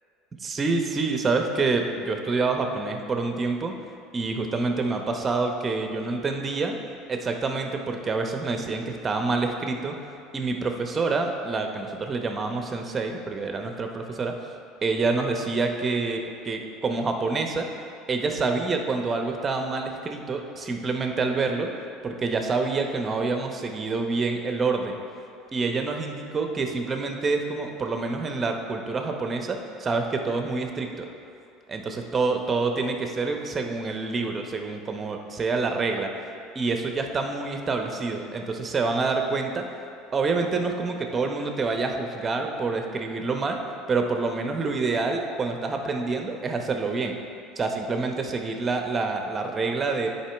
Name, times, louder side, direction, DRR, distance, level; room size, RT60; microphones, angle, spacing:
voice 1, 0.4-3.7 4.1-6.8 7.1-10.1 10.3-14.4 14.8-17.7 18.1-21.7 22.0-25.0 25.5-31.1 31.7-36.3 36.5-39.7 40.1-43.6 43.9-47.2 47.6-50.1, right 3 dB, 30° right, 4 dB, 0.8 m, -27 dB
10.0 x 4.5 x 3.4 m, 2.5 s
hypercardioid pair, 85°, 0 cm